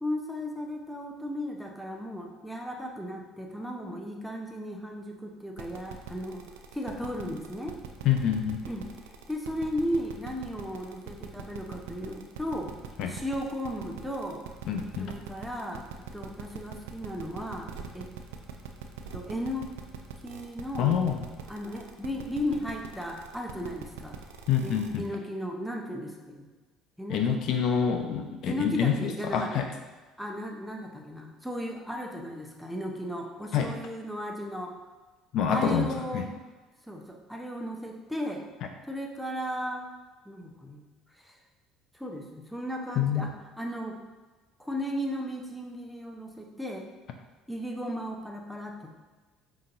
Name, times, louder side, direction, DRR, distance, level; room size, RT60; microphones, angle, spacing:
voice 1, 0.0-6.4 6.7-7.8 8.7-8.9 9.3-12.7 13.1-14.4 15.0-17.7 17.9-18.1 19.1-19.7 20.2-20.9 21.5-24.2 24.6-26.5 27.0-27.4 28.5-29.6 30.2-34.7 35.5-36.4 36.9-38.4 38.9-39.9 40.2-40.9 41.1-41.3 41.9-44.0 44.6-46.9 47.5-48.9, equal, ahead, 1 dB, 0.7 m, -35 dB
sound 1, 5.6-25.1, right 7 dB, 85° right, 0.4 m, -42 dB
voice 2, 8.0-8.6 13.0-13.1 14.7-15.1 20.8-21.2 24.5-25.0 27.1-29.7 33.5-33.7 35.3-36.3 43.0-43.3, left 7 dB, 65° left, 5 dB, 0.3 m, -26 dB
5.1 x 2.8 x 2.6 m, 1.3 s
hypercardioid pair, 70°, 0 cm